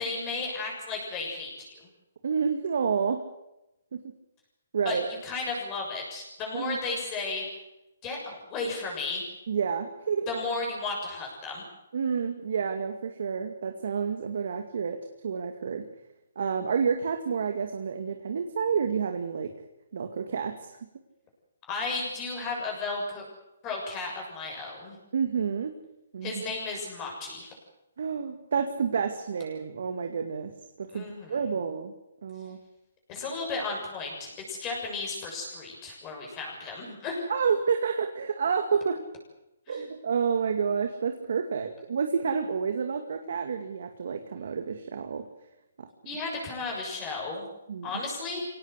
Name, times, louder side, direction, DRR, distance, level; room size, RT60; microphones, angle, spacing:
voice 1, 0.0-1.7 4.8-7.4 8.0-9.2 10.3-11.6 21.7-23.2 23.6-25.0 26.2-27.5 30.9-31.4 33.1-37.2 39.7-39.9 46.0-47.4 47.8-48.5, left 3 dB, 20° left, -1 dB, 6.9 m, -34 dB
voice 2, 2.2-3.2 3.9-4.0 4.7-5.1 6.5-6.8 9.5-10.3 11.9-15.0 15.2-15.8 16.4-19.5 19.9-20.8 25.1-25.8 26.1-26.4 28.0-30.5 30.8-31.9 32.2-32.6 37.3-39.0 39.7-45.2 45.8-45.9 47.7-47.9, right 6 dB, 65° right, 6 dB, 2.2 m, -29 dB
24.0 x 18.0 x 8.2 m, 0.91 s
hypercardioid pair, 160°, 0 cm